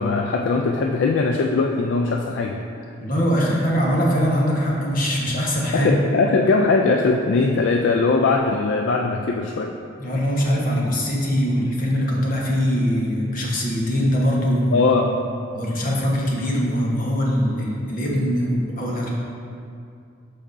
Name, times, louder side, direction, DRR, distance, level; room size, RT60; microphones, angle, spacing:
voice 1, 0.0-2.6 5.7-9.8 14.7-15.2, left 3 dB, 65° left, 2 dB, 0.3 m, -20 dB
voice 2, 3.0-5.9 10.0-14.9 15.5-19.1, equal, 45° left, -3 dB, 1.1 m, -22 dB
12.0 x 4.1 x 2.6 m, 2.5 s
head